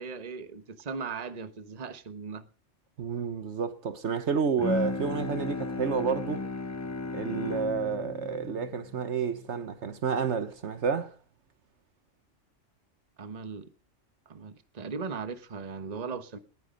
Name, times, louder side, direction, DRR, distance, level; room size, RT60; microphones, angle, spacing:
voice 1, 0.0-2.4 13.2-13.7 14.3-16.4, right 5 dB, 35° right, 1.1 m, -38 dB
voice 2, 3.0-6.4 7.1-11.2, right 6 dB, 65° right, 1.3 m, -30 dB
Bowed string instrument, 4.6-10.0, left 3 dB, 15° left, 0.6 m, -35 dB
19.5 x 9.4 x 5.2 m
omnidirectional pair, 1.3 m